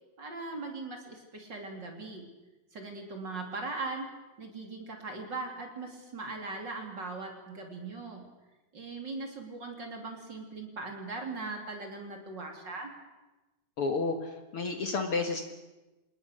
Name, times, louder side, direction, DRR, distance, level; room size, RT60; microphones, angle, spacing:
voice 1, 0.2-2.3 2.7-4.1 4.4-8.3 8.7-12.9, right 3 dB, 35° right, 3 dB, 3.6 m, -39 dB
voice 2, 13.8-15.4, left 3 dB, 50° left, 5 dB, 2.2 m, -31 dB
27.0 x 20.5 x 6.6 m, 1.1 s
omnidirectional pair, 3.4 m